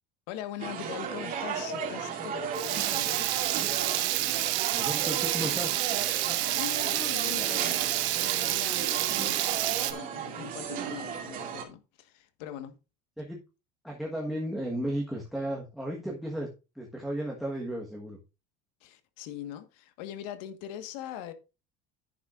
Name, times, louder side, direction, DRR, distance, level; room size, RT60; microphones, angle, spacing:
voice 1, 0.3-3.3 6.3-7.8 8.1-9.6 9.9-12.7 18.8-21.3, left 11 dB, 90° left, 1.5 m, -41 dB
sound 1, 0.6-11.6, right 7 dB, 40° right, 2.2 m, -35 dB
Water tap faucet / Liquid, 2.5-9.9, right 16 dB, 60° right, 1.1 m, -29 dB
voice 2, 4.7-5.9 13.2-13.4 13.8-16.5 16.7-18.2, right 1 dB, ahead, 1.3 m, -34 dB
10.5 x 9.3 x 2.5 m
cardioid pair, 160°, 21 cm